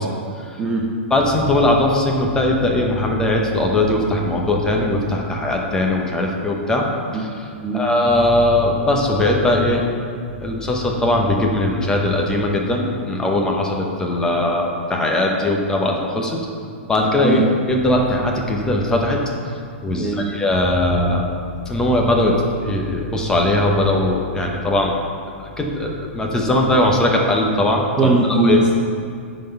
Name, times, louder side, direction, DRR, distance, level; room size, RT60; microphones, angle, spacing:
voice 1, 0.6-0.9 7.6-7.9 17.2-17.4 20.0-20.3 28.0-28.7, right 3 dB, 15° right, -2 dB, 0.6 m, -19 dB
voice 2, 1.1-6.8 7.1-7.5 7.7-9.8 10.4-16.4 16.9-19.2 19.8-21.2 21.7-22.3 22.6-24.9 25.6-28.6, left 1 dB, 10° left, 0 dB, 0.9 m, -19 dB
10.5 x 4.0 x 5.3 m, 2.3 s
hypercardioid pair, 150°, 7 cm